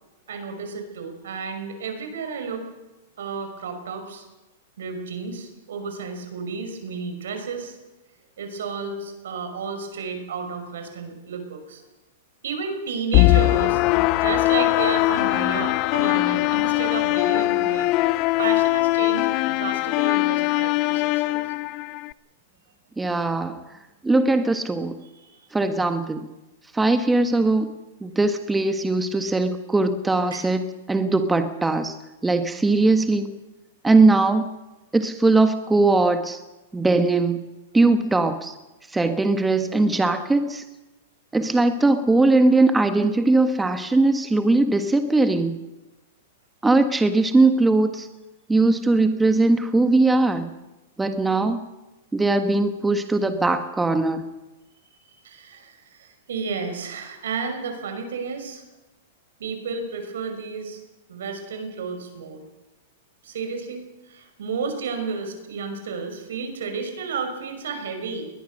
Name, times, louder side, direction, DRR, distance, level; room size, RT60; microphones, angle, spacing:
voice 1, 0.3-2.7 3.2-4.2 4.8-7.8 8.4-11.8 12.4-13.8 14.1-17.9 18.4-21.4 25.2-25.3 30.3-30.4 55.2-58.6 59.4-60.8 61.1-62.4 63.2-68.3, right 5 dB, 80° right, 6 dB, 5.7 m, -32 dB
sound 1, 13.1-22.1, left 19 dB, 45° left, 0.6 m, -21 dB
voice 2, 23.0-23.6 24.0-25.0 25.5-26.3 26.7-27.7 28.0-31.9 32.2-33.3 33.8-34.5 34.9-36.4 36.7-37.4 37.7-38.5 38.9-40.6 41.3-45.6 46.6-48.1 48.5-50.5 51.0-51.6 52.1-54.3, right 2 dB, 10° right, 8 dB, 1.4 m, -20 dB
21.0 x 20.5 x 6.4 m, 1.1 s
hypercardioid pair, 125°, 0 cm